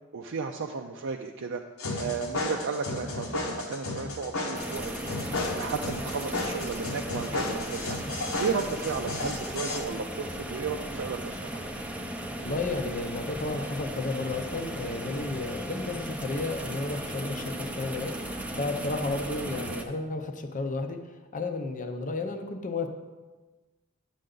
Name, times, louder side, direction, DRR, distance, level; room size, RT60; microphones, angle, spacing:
voice 1, 0.1-1.6 1.9-8.0 8.4-11.7, right 5 dB, 60° right, 3 dB, 0.4 m, -34 dB
sound 1, 1.8-9.8, left 2 dB, 75° left, 1.1 m, -33 dB
sound 2, 4.5-19.8, right 1 dB, 5° right, 0.5 m, -36 dB
voice 2, 12.4-22.9, left 3 dB, 40° left, 6 dB, 0.6 m, -33 dB
9.1 x 6.7 x 3.8 m, 1.2 s
head